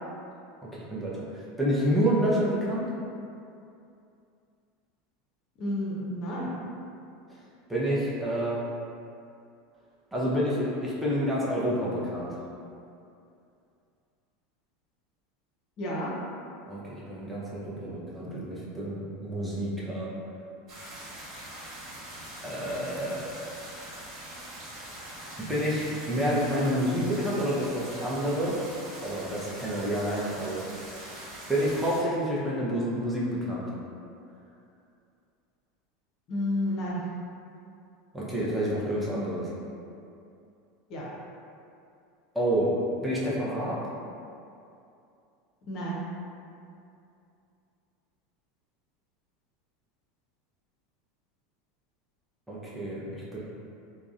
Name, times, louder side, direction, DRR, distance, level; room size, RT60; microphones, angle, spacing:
voice 1, 0.6-2.9 7.7-8.6 10.1-12.4 16.7-20.1 22.4-23.3 25.4-28.6 29.0-30.6 31.5-33.7 38.1-39.5 42.3-42.7 43.0-43.8 52.5-53.4, equal, 5° right, -7 dB, 0.7 m, -28 dB
voice 2, 5.6-6.5 15.8-16.1 36.3-37.0 40.9-41.1 45.7-46.0, left 1 dB, 50° left, -5 dB, 0.6 m, -31 dB
sound 1, 20.7-32.0, right 1 dB, 40° right, 1.2 m, -43 dB
3.5 x 2.0 x 2.4 m, 2.6 s
figure-of-eight pair, 80°, 0 cm